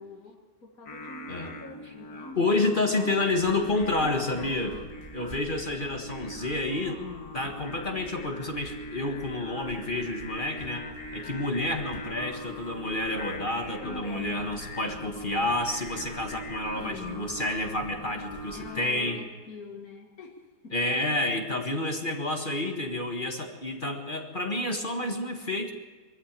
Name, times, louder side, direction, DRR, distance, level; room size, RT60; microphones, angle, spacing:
voice 1, 0.0-2.5 2.8-3.4 3.9-5.0 6.8-7.6 13.8-14.5 16.7-17.3 18.5-20.7 21.6-21.9, left 3 dB, 60° left, 0 dB, 2.3 m, -44 dB
Singing, 0.9-19.1, left 1 dB, 75° left, 2.3 m, -42 dB
voice 2, 2.4-4.8 5.1-7.0 7.3-10.9 11.1-19.2 20.7-25.7, left 2 dB, 30° left, 3 dB, 1.7 m, -29 dB
sound 1, 3.3-18.7, right 3 dB, 20° right, 4.2 m, -51 dB
23.0 x 14.5 x 8.8 m, 1.4 s
omnidirectional pair, 1.8 m